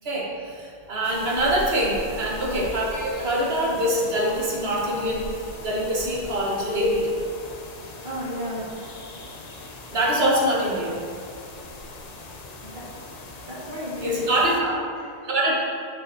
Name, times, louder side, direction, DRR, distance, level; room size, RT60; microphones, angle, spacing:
voice 1, 0.0-5.3 5.6-7.1 9.9-11.0 14.0-14.8 15.2-15.5, right 1 dB, 60° right, -3 dB, 1.5 m, -24 dB
sound 1, 1.0-14.6, left 2 dB, 45° left, 0.7 m, -40 dB
voice 2, 8.0-8.7 12.6-12.9 13.4-14.5 15.0-15.3, equal, 45° right, -7 dB, 2.0 m, -34 dB
9.5 x 5.6 x 2.7 m, 2.4 s
omnidirectional pair, 1.2 m